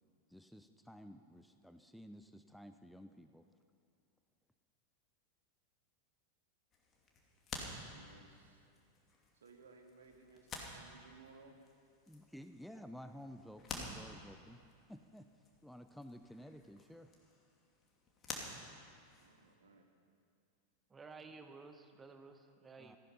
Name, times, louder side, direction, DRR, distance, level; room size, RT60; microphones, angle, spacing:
voice 1, 0.3-3.5 12.1-14.6 14.9-15.3 15.6-17.1 22.8-23.0, equal, ahead, 8 dB, 0.6 m, -53 dB
sound 1, 6.7-19.6, left 3 dB, 25° left, 2.6 m, -51 dB
voice 2, 7.9-8.7 9.3-11.6 19.1-19.9, right 4 dB, 65° right, 3 dB, 2.0 m, -61 dB
voice 3, 20.9-23.0, right 4 dB, 15° right, 7 dB, 1.0 m, -54 dB
17.0 x 15.0 x 5.7 m, 2.3 s
figure-of-eight pair, 90°, 0 cm